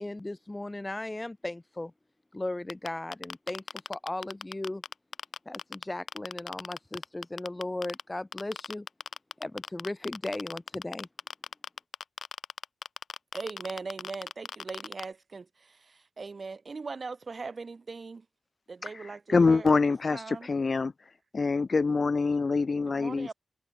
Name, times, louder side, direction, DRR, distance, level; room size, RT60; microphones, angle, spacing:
voice 1, 0.0-1.9 2.3-4.8 5.5-8.9 9.4-11.1, left 2 dB, 15° left, 1.1 m, -36 dB
sound 1, 2.7-5.8 6.1-8.0 8.3-15.0, left 6 dB, 60° left, 2.2 m, -37 dB
voice 2, 13.3-18.2 18.7-19.2 19.5-19.7 20.1-20.5 22.9-23.3, right 4 dB, 35° right, 1.5 m, -40 dB
voice 3, 18.8-20.9 21.3-23.3, left 4 dB, 35° left, 1.0 m, -25 dB
wide cardioid pair, 150°, 0 cm